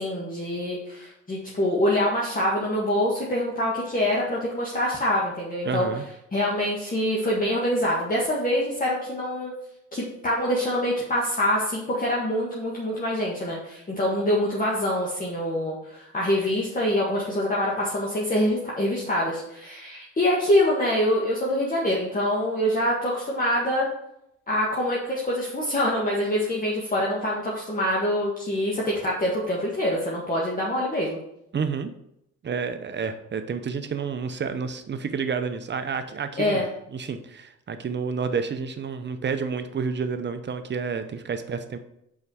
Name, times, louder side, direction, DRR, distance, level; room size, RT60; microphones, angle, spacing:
voice 1, 0.0-5.9 6.3-9.5 9.9-23.9 24.5-31.2 36.4-36.7, left 1 dB, 30° left, -5 dB, 1.6 m, -25 dB
voice 2, 5.6-6.0 31.5-31.9 32.4-36.6 36.9-41.8, right 5 dB, 35° right, 9 dB, 0.7 m, -29 dB
5.5 x 4.7 x 4.8 m, 0.80 s
cardioid pair, 90°, 30 cm